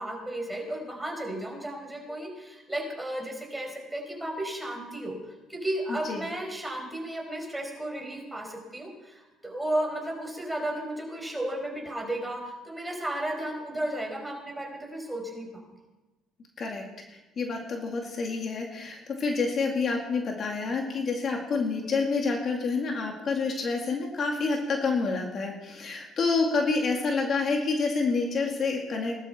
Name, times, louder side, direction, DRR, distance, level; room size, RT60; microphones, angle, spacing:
voice 1, 0.0-5.2 5.5-15.5, right 1 dB, 10° right, 1 dB, 4.7 m, -34 dB
voice 2, 5.9-6.2 16.6-16.8 17.1-29.1, left 4 dB, 45° left, 1 dB, 2.4 m, -28 dB
18.5 x 12.5 x 4.5 m, 1.1 s
cardioid pair, 100°, 0 cm